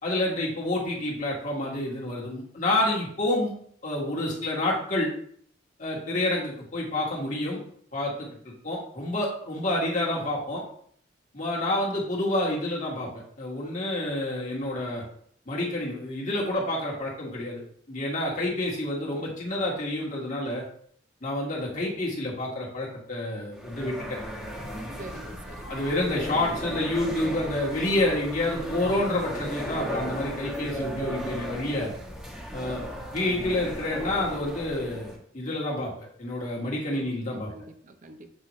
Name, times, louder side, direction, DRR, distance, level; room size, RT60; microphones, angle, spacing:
voice 1, 0.0-3.5 3.8-5.1 5.8-7.6 7.9-8.3 8.6-10.6 11.3-15.0 15.5-17.6 17.9-20.6 21.2-24.2 25.7-31.9 32.5-32.8 33.1-35.9 36.2-37.5, left 1 dB, 40° left, -4 dB, 1.5 m, -28 dB
sound 1, 23.5-35.2, equal, 5° right, 1.2 m, -36 dB
voice 2, 25.0-25.8 36.9-38.3, right 2 dB, 40° right, 7 dB, 0.6 m, -46 dB
7.6 x 4.1 x 3.1 m, 0.62 s
head